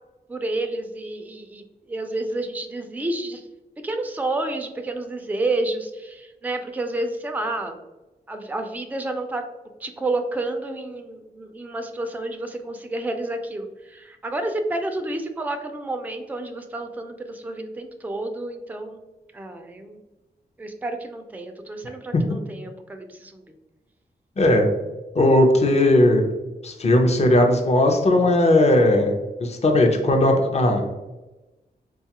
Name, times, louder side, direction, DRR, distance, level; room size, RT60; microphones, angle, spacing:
voice 1, 0.3-1.6 1.9-3.4 3.8-7.8 8.3-9.4 9.8-19.0 19.3-20.0 20.6-23.4, right 2 dB, 10° right, 5 dB, 0.4 m, -30 dB
voice 2, 24.4-24.7 25.1-26.2 26.6-29.1 29.4-30.8, left 1 dB, 40° left, 3 dB, 0.6 m, -17 dB
3.8 x 2.3 x 2.8 m, 1.1 s
cardioid pair, 60°, 18 cm